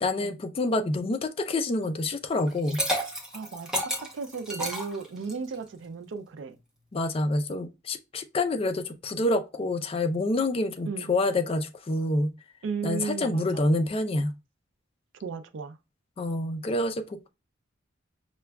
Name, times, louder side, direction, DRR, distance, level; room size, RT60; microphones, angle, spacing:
voice 1, 0.0-2.8 6.9-12.3 12.8-14.3 16.2-17.3, left 2 dB, 30° left, 0.3 m, -27 dB
Liquid, 2.5-5.5, equal, 5° right, 0.7 m, -31 dB
voice 2, 3.3-6.6 10.9-11.1 12.6-13.7 15.2-15.8, right 5 dB, 70° right, 0.4 m, -35 dB
5.8 x 2.2 x 2.2 m
head